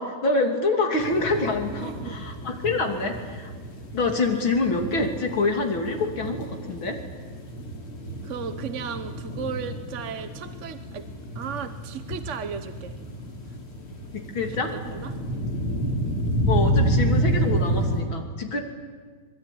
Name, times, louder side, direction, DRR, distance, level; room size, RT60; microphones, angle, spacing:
voice 1, 0.0-3.5 3.9-7.0 14.1-14.7 16.5-18.6, left 3 dB, 65° left, 4 dB, 3.6 m, -26 dB
sound 1, 1.0-18.0, right 1 dB, 80° left, 4.4 m, -29 dB
voice 2, 1.7-2.2 8.2-11.1 11.3-13.0 14.4-14.6 14.9-15.1, right 6 dB, 45° right, 9 dB, 1.1 m, -35 dB
26.5 x 21.0 x 10.0 m, 1.5 s
omnidirectional pair, 2.4 m